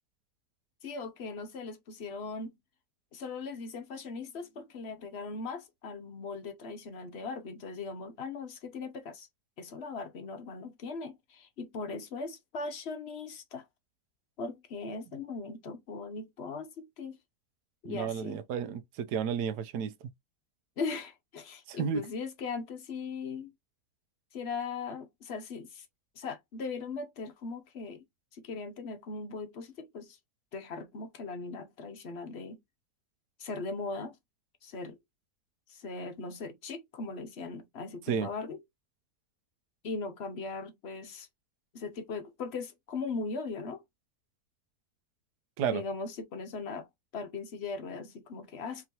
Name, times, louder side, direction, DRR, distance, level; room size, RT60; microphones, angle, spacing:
voice 1, 0.8-2.5 3.1-9.3 9.6-13.7 14.4-17.2 17.8-18.4 20.8-23.5 24.3-25.8 26.2-28.0 28.3-30.2 30.5-32.6 33.4-34.2 34.6-35.0 35.7-38.6 39.8-41.3 41.7-43.8 45.7-46.9 47.1-48.9, left 4 dB, 50° left, 0.8 m, -39 dB
voice 2, 17.9-19.9 21.7-22.1 38.1-38.3 45.6-45.8, right 7 dB, 80° right, 1.2 m, -32 dB
4.7 x 3.0 x 2.8 m
omnidirectional pair, 1.7 m